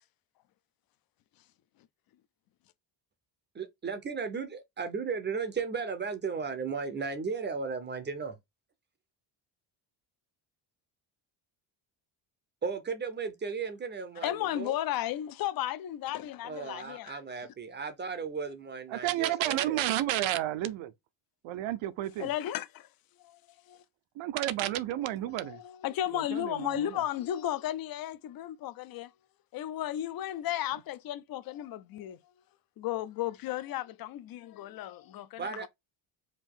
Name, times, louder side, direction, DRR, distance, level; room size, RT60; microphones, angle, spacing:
voice 1, 3.5-8.4 12.6-14.8 16.4-19.8 35.4-35.7, right 5 dB, 25° right, 0.5 m, -35 dB
voice 2, 14.2-17.2 22.2-22.9 23.2-23.4 23.7-23.8 25.4-29.1 29.5-32.2 32.8-35.7, left 12 dB, 50° left, 0.5 m, -34 dB
voice 3, 18.9-20.9 21.4-22.3 24.2-25.6 26.1-27.0, right 14 dB, 75° right, 0.7 m, -31 dB
5.0 x 2.6 x 3.6 m
cardioid pair, 170°, 47 cm